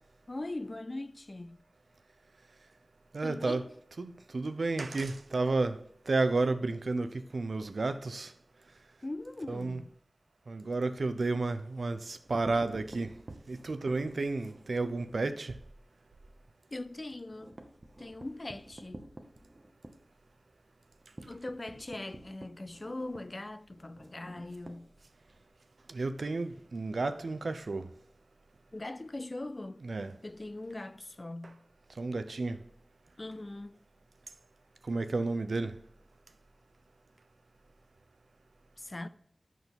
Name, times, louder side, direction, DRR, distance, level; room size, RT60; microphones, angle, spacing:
voice 1, 0.3-1.6 3.2-3.7 9.0-9.9 16.7-17.6 18.0-19.1 21.3-24.9 28.7-29.9 30.2-31.6 33.2-33.8 38.8-39.1, left 2 dB, 40° left, 0.4 m, -41 dB
voice 2, 3.1-3.6 4.0-8.3 9.5-9.8 10.5-13.2 13.5-15.6 25.9-27.9 29.8-30.1 32.0-32.6 34.8-35.8, right 3 dB, 80° right, 0.6 m, -32 dB
sound 1, 12.1-15.3 15.7-15.9 16.2-16.3 16.6-25.5, right 1 dB, 40° right, 1.0 m, -51 dB
8.1 x 6.1 x 3.6 m
wide cardioid pair, 70°, 0 cm